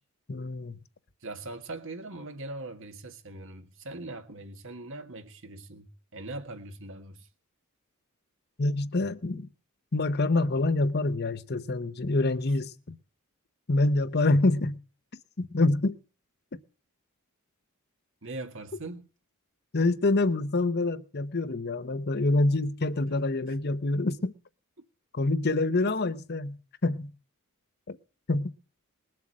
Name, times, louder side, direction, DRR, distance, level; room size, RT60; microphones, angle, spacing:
voice 1, 0.3-0.8 8.6-9.5 9.9-13.0 13.7-14.8 15.4-16.0 19.7-24.3 25.1-26.6 26.8-27.1 27.9-28.0 28.3-28.5, left 2 dB, 50° left, 0.9 m, -26 dB
voice 2, 1.2-7.3 18.2-19.1, right 2 dB, 60° right, 1.8 m, -41 dB
20.5 x 7.6 x 7.5 m
head